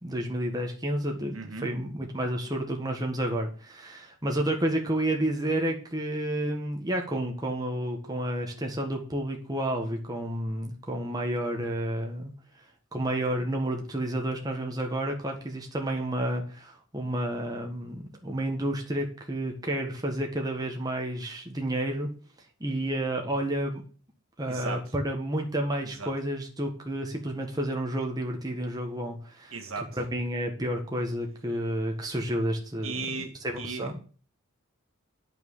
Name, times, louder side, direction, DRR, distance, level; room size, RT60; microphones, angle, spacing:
voice 1, 0.0-12.3 12.9-22.1 22.6-23.8 24.4-29.5 30.0-34.0, right 1 dB, 20° right, 1 dB, 1.6 m, -30 dB
voice 2, 1.3-1.7 24.5-24.8 26.0-26.1 29.5-29.9 32.8-33.9, right 4 dB, 75° right, 4 dB, 1.8 m, -36 dB
9.0 x 6.0 x 7.3 m, 0.40 s
head